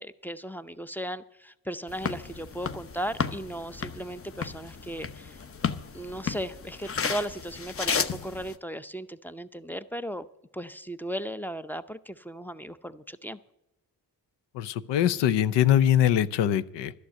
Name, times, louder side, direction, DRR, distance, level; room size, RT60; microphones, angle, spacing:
voice 1, 0.0-5.4 5.9-10.3 10.5-13.4, equal, 5° left, 13 dB, 0.6 m, -36 dB
sound 1, 1.9-8.5, left 6 dB, 30° left, 0.9 m, -33 dB
voice 2, 14.5-16.9, left 10 dB, 80° left, 16 dB, 0.7 m, -23 dB
11.5 x 6.6 x 9.5 m, 0.88 s
supercardioid pair, 60°, 42 cm